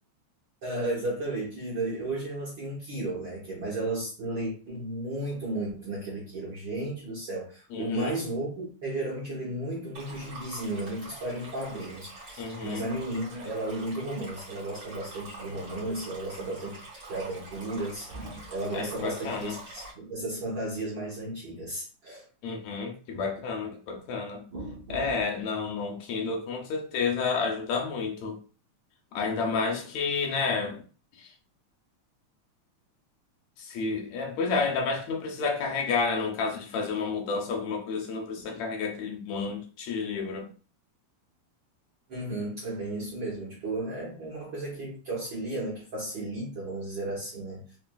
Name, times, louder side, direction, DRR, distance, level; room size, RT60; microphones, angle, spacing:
voice 1, 0.6-16.8 17.1-22.3 24.5-25.2 38.5-38.6 42.1-47.6, right 2 dB, 60° right, 1.3 m, -34 dB
voice 2, 7.7-8.1 12.4-12.9 18.7-19.5 22.4-24.4 24.9-28.4 29.1-30.8 31.2-31.3 33.6-40.5, left 4 dB, 75° left, 1.8 m, -30 dB
Stream, 9.9-19.9, right 2 dB, 40° right, 1.4 m, -45 dB
4.5 x 3.3 x 2.2 m
omnidirectional pair, 3.4 m